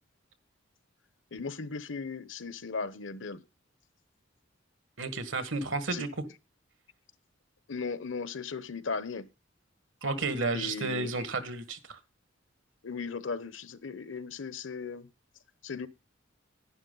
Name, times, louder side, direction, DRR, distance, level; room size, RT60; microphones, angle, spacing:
voice 1, 1.3-3.4 5.9-6.1 7.7-9.3 10.5-11.1 12.8-15.1 15.6-15.9, left 4 dB, 80° left, 0.9 m, -37 dB
voice 2, 5.0-6.1 10.0-12.0, right 3 dB, 85° right, 1.8 m, -32 dB
11.0 x 10.5 x 3.9 m
head